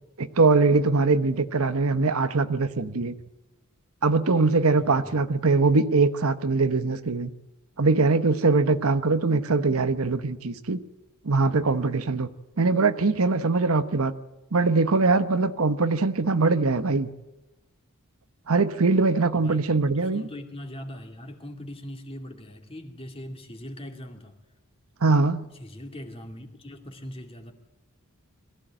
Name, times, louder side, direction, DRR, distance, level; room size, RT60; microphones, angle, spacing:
voice 1, 0.2-3.2 4.0-7.3 7.8-10.8 11.2-12.3 12.6-14.1 14.5-17.1 18.5-20.2 25.0-25.5, right 3 dB, 75° right, 1.0 m, -22 dB
voice 2, 4.8-5.1 19.4-24.4 25.6-27.5, left 1 dB, 25° left, 2.5 m, -41 dB
22.5 x 15.5 x 8.9 m
head